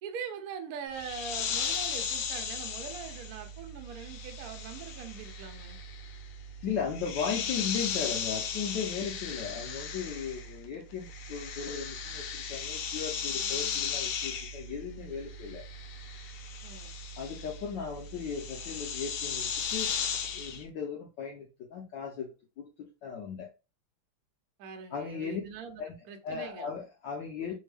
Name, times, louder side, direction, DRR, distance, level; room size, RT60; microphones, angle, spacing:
voice 1, 0.0-5.8 16.6-16.9 24.6-26.7, right 6 dB, 85° right, 0.8 m, -42 dB
sound 1, 0.9-10.7 10.9-20.6, left 6 dB, 85° left, 1.5 m, -36 dB
voice 2, 6.6-15.6 17.2-19.9 20.3-22.3 22.6-23.5 24.9-25.4 25.8-25.9 26.2-27.5, left 6 dB, 70° left, 1.2 m, -37 dB
3.5 x 2.2 x 3.3 m
omnidirectional pair, 2.3 m